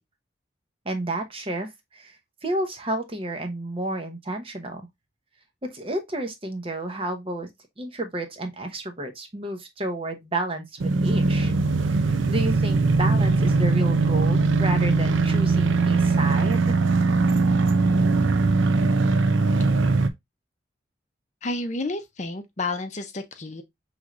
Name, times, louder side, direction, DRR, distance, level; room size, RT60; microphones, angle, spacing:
voice 1, 0.8-2.2 2.4-4.9 5.7-7.5 7.8-11.5 11.9-16.8, right 1 dB, 30° right, 0.7 m, -31 dB
sound 1, 10.8-20.1, right 3 dB, 85° right, 0.5 m, -21 dB
voice 2, 21.4-23.6, left 2 dB, 40° left, 0.6 m, -30 dB
6.1 x 3.2 x 2.4 m
head